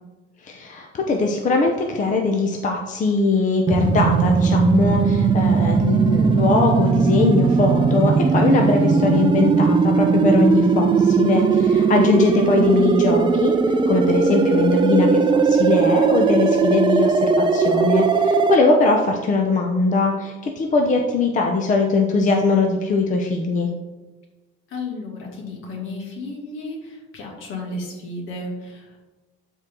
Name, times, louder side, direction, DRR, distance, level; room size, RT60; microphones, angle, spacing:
voice 1, 0.4-23.7, left 3 dB, 35° left, 2 dB, 0.8 m, -21 dB
sound 1, 3.7-18.6, right 5 dB, 25° right, 0.5 m, -18 dB
voice 2, 12.3-12.7 24.7-29.1, left 2 dB, 70° left, 0 dB, 2.4 m, -33 dB
12.0 x 4.6 x 3.8 m, 1.2 s
cardioid pair, 145°, 21 cm